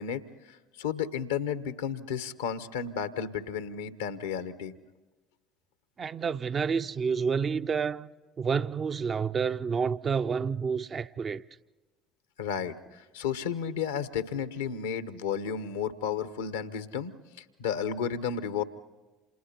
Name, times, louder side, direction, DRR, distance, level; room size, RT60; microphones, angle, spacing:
voice 1, 0.0-4.7 12.4-18.6, left 7 dB, 70° left, 1.0 m, -33 dB
voice 2, 6.0-8.1 8.4-11.4, right 6 dB, 35° right, 0.6 m, -29 dB
29.5 x 27.5 x 4.3 m
figure-of-eight pair, 55°, 0 cm